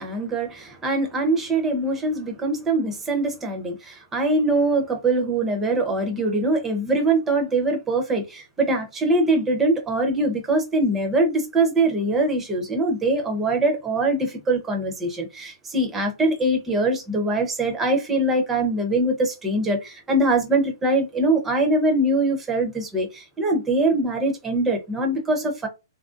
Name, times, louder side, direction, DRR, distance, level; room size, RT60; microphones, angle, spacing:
voice 1, 0.0-25.7, right 2 dB, 10° right, 0.7 m, -23 dB
3.2 x 2.5 x 2.4 m
hypercardioid pair, 150°, 2 cm